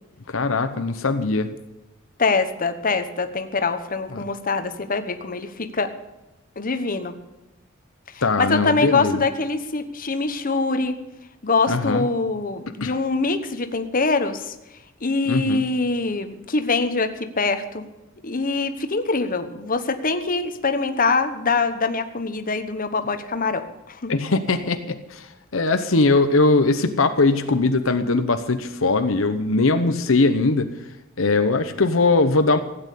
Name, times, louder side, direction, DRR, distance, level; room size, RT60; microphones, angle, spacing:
voice 1, 0.3-1.5 4.1-4.2 8.2-9.2 11.7-12.1 12.8-12.9 15.3-15.6 24.1-30.7 31.2-32.6, left 3 dB, 70° left, 8 dB, 0.9 m, -20 dB
voice 2, 2.2-5.9 6.6-7.1 8.4-10.9 11.4-14.5 15.0-17.8 18.2-24.1, left 3 dB, 45° left, 9 dB, 1.1 m, -24 dB
16.0 x 8.9 x 8.4 m, 0.99 s
head